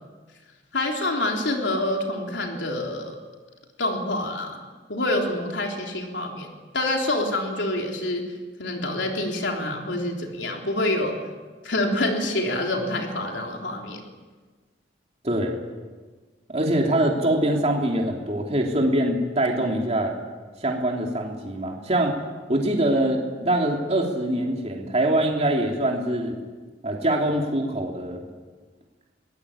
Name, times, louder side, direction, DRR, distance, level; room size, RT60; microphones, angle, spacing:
voice 1, 0.7-3.2 3.8-4.6 4.9-8.2 8.6-11.1 11.6-14.0, left 1 dB, 85° left, 1 dB, 3.6 m, -26 dB
voice 2, 15.2-15.6 16.5-20.2 20.6-22.2 22.5-26.4 26.8-28.2, right 1 dB, 35° right, 0 dB, 3.1 m, -24 dB
24.5 x 20.0 x 8.7 m, 1.4 s
head